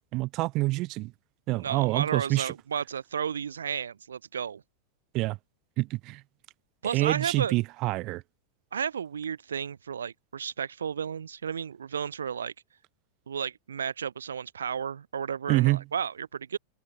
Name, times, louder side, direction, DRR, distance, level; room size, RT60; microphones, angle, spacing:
voice 1, 0.1-1.1 1.5-2.5 5.1-5.4 5.8-6.2 6.9-8.2 15.5-15.8, right 21 dB, 40° right, 7.5 m, -26 dB
voice 2, 1.6-4.6 6.8-7.5 8.7-12.5 13.3-16.6, right 7 dB, 70° right, 6.2 m, -33 dB
open air
figure-of-eight pair, 90°, 0 cm